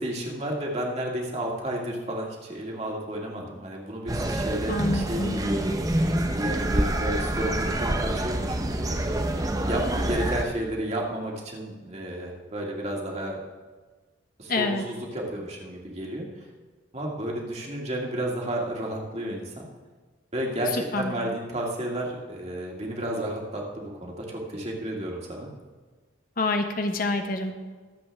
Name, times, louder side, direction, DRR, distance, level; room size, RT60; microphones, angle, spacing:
voice 1, 0.0-5.7 6.3-9.2 9.7-13.4 14.4-16.3 16.9-19.7 20.3-25.5, right 1 dB, 35° right, -1 dB, 2.0 m, -32 dB
sound 1, 4.1-10.4, right 1 dB, 20° right, 0.7 m, -27 dB
voice 2, 4.7-5.4 14.5-14.8 20.9-21.1 26.4-27.5, left 2 dB, 45° left, 5 dB, 0.9 m, -27 dB
22.5 x 7.8 x 3.5 m, 1.4 s
head